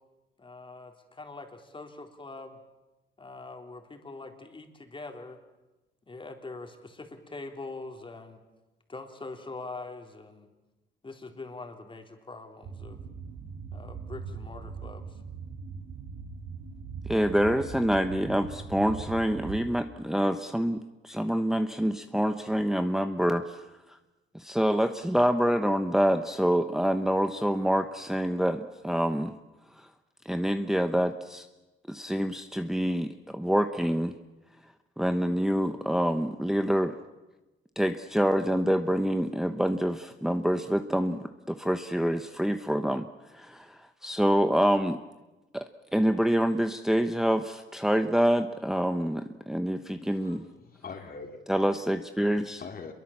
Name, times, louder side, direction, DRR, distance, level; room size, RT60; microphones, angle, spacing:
voice 1, 0.4-2.6 3.2-5.4 6.1-8.4 8.9-10.5 11.0-13.0 13.7-15.2, left 3 dB, 25° left, 4 dB, 3.7 m, -43 dB
sound 1, 12.6-19.7, right 5 dB, 80° right, 3.6 m, -40 dB
voice 2, 17.1-23.6 24.3-29.3 29.8-29.9 30.2-31.5 31.9-34.1 35.0-37.0 37.8-43.1 43.3-45.0 45.5-50.4 51.5-52.6, equal, ahead, 8 dB, 1.0 m, -26 dB
voice 3, 50.1-51.4 52.4-52.9, left 5 dB, 50° left, 4 dB, 3.6 m, -43 dB
27.0 x 22.5 x 7.3 m, 1.1 s
cardioid pair, 90°, 20 cm